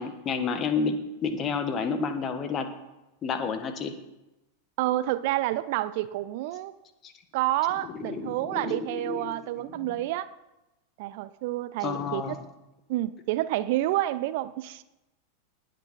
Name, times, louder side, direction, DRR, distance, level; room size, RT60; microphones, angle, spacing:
voice 1, 0.0-2.7 3.2-3.9 7.0-7.1 8.0-9.3 9.7-9.9 11.8-12.4, left 5 dB, 30° left, 9 dB, 1.3 m, -30 dB
voice 2, 4.8-6.7 7.3-10.3 11.0-12.4 12.9-14.8, right 15 dB, 50° right, 16 dB, 0.4 m, -29 dB
19.0 x 8.2 x 4.3 m, 0.98 s
figure-of-eight pair, 90°, 0 cm